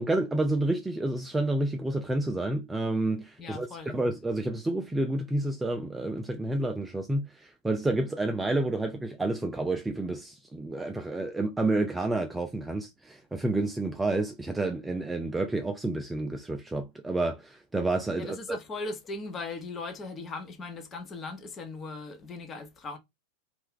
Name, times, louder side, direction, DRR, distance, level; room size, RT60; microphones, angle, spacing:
voice 1, 0.0-18.6, right 2 dB, 10° right, 0.3 m, -29 dB
voice 2, 3.4-4.0 18.2-23.0, left 3 dB, 25° left, 0.7 m, -38 dB
2.4 x 2.1 x 3.6 m
figure-of-eight pair, 90°, 0 cm